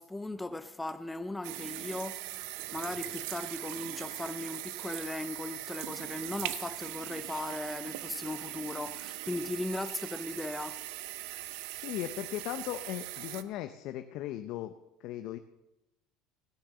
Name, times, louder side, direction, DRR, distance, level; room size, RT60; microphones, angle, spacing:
voice 1, 0.0-2.4 2.7-10.8, left 2 dB, 10° left, 0.5 m, -38 dB
sound 1, 1.4-13.4, right 15 dB, 75° right, 0.7 m, -40 dB
voice 2, 11.8-14.7 15.0-15.4, left 13 dB, 60° left, 0.7 m, -37 dB
16.5 x 6.6 x 7.5 m
cardioid pair, 135°, 0 cm